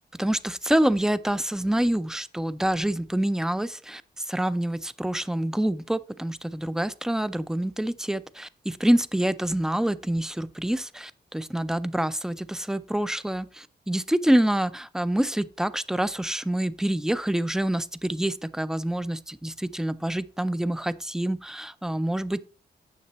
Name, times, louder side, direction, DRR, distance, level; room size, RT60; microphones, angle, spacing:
voice 1, 0.2-22.4, right 1 dB, 5° right, 0.4 m, -26 dB
9.3 x 6.9 x 3.0 m
cardioid pair, 100°, 18 cm